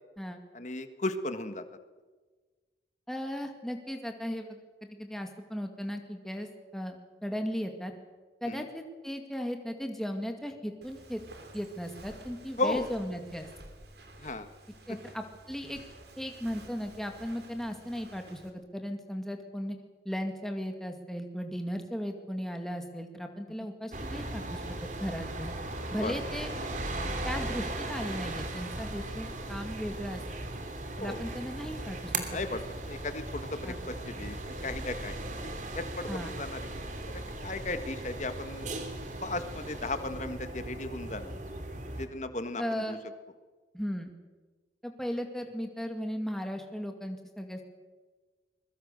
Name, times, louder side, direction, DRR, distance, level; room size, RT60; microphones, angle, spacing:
voice 1, 0.5-1.6 8.5-8.6 12.6-12.9 14.2-14.5 26.0-26.1 31.0-31.2 32.3-32.6 32.9-34.4 34.6-35.1 35.4-36.7 37.1-38.7 39.2-41.3 42.0-43.0, left 2 dB, 40° left, 9 dB, 1.6 m, -35 dB
voice 2, 3.1-7.9 8.4-11.2 11.5-13.5 14.9-15.8 16.2-19.8 20.0-25.5 25.9-26.5 27.2-30.2 31.0-32.4 33.6-33.8 36.1-36.3 42.6-43.0 43.7-44.1 44.8-47.6, equal, ahead, 4 dB, 2.1 m, -36 dB
Walk footsteps, 10.8-18.5, right 1 dB, 65° right, 3.7 m, -52 dB
sound 1, 23.9-42.1, right 2 dB, 45° right, 2.9 m, -38 dB
23.5 x 22.0 x 6.8 m, 1.4 s
head